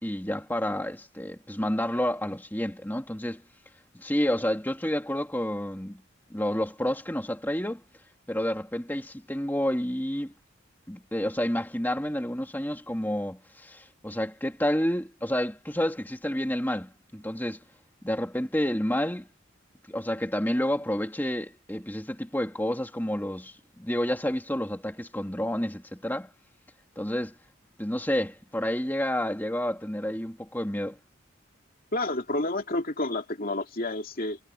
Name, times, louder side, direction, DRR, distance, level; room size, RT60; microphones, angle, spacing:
voice 1, 0.0-3.4 3.9-6.0 6.3-7.8 8.3-10.3 10.9-17.6 18.0-19.3 19.9-26.3 27.0-27.3 27.8-31.0, left 1 dB, 10° left, 2.4 m, -29 dB
voice 2, 31.9-34.4, left 2 dB, 45° left, 2.7 m, -29 dB
head